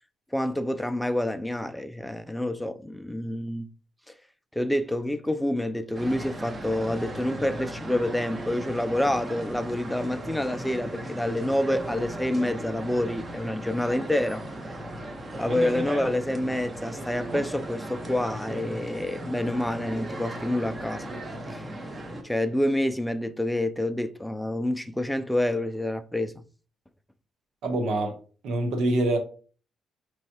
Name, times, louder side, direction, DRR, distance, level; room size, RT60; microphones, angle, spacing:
voice 1, 0.3-3.7 4.5-14.4 15.4-21.0 21.5-21.6 22.2-26.3, left 1 dB, 5° left, 0.4 m, -28 dB
sound 1, 5.9-22.2, right 1 dB, 30° right, 1.1 m, -37 dB
voice 2, 27.6-28.2 28.4-29.2, right 1 dB, 75° right, 1.1 m, -25 dB
5.6 x 3.1 x 2.9 m
cardioid pair, 90°, 0 cm